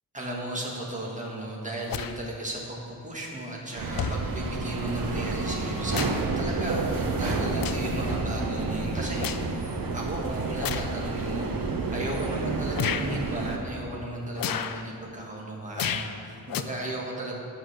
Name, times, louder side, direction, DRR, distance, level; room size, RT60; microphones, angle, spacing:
voice 1, 0.1-17.4, right 1 dB, 20° right, -3 dB, 1.6 m, -35 dB
sound 1, 1.9-2.2 3.2-3.3 3.9-4.2 5.4-6.3 6.7-6.9 7.5-8.0 8.4-9.5 10.6-10.9 11.6-11.7 12.7-13.1 14.4-14.8 15.7-16.1 16.5-16.6, left 9 dB, 75° left, 0.5 m, -32 dB
sound 2, 3.8-13.6, right 3 dB, 75° right, 0.9 m, -30 dB
8.0 x 6.2 x 6.6 m, 2.6 s
wide cardioid pair, 130°, 35 cm